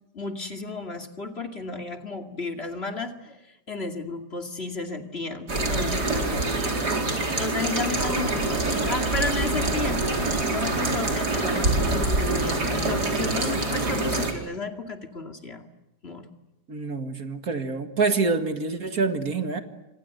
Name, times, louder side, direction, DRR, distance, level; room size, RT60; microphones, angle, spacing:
voice 1, 0.1-3.4 3.7-6.6 7.4-15.7 16.0-16.3, left 3 dB, 40° left, 5 dB, 2.6 m, -33 dB
sound 1, 5.5-14.3, right 2 dB, 75° right, 4.7 m, -25 dB
voice 2, 16.7-19.6, right 4 dB, 60° right, 7 dB, 2.4 m, -26 dB
28.5 x 25.5 x 7.9 m, 0.96 s
omnidirectional pair, 1.7 m